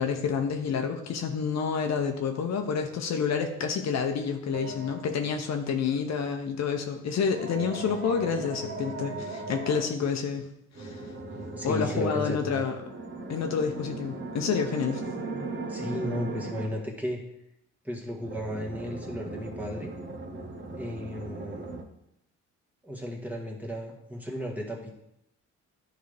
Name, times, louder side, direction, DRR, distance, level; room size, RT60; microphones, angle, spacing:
voice 1, 0.0-10.5 10.8-11.0 11.6-12.8 13.3-15.0, left 6 dB, 60° left, 5 dB, 0.8 m, -29 dB
sound 1, 4.5-5.4 7.2-9.9 10.7-12.1 12.7-16.8 18.2-21.8, right 3 dB, 35° right, 1.1 m, -38 dB
voice 2, 11.6-12.7 15.7-17.2 17.8-19.9 20.7-21.8 22.8-24.9, left 1 dB, 5° right, -1 dB, 1.5 m, -34 dB
10.5 x 3.9 x 3.4 m, 0.79 s
cardioid pair, 90°, 30 cm